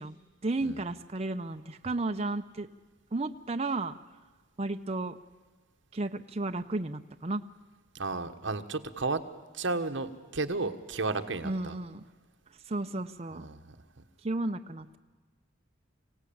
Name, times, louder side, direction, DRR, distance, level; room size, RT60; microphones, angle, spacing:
voice 1, 0.0-2.7 3.1-3.9 4.6-5.2 5.9-7.4 11.4-12.1 12.7-13.5 14.2-15.0, right 2 dB, 30° right, 6 dB, 0.6 m, -33 dB
voice 2, 7.9-9.2 9.5-11.8 13.3-13.6, right 3 dB, 65° right, 7 dB, 1.3 m, -33 dB
25.5 x 17.0 x 8.7 m, 1.4 s
head